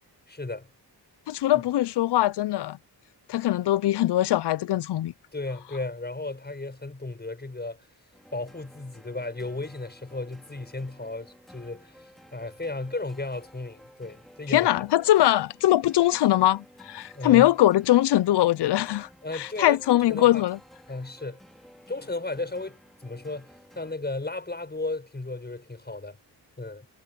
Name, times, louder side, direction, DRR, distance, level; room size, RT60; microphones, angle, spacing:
voice 1, 0.3-0.7 1.5-1.6 5.3-7.9 8.3-14.9 17.1-17.5 19.2-20.4 20.9-21.4 21.9-26.2 26.6-26.9, left 2 dB, 25° left, 7.0 m, -35 dB
voice 2, 1.3-2.8 3.3-5.1 14.5-19.1 19.3-20.6, left 14 dB, 80° left, 0.5 m, -22 dB
sound 1, 8.1-23.9, equal, ahead, 3.9 m, -53 dB
wide cardioid pair, 95°, 40 cm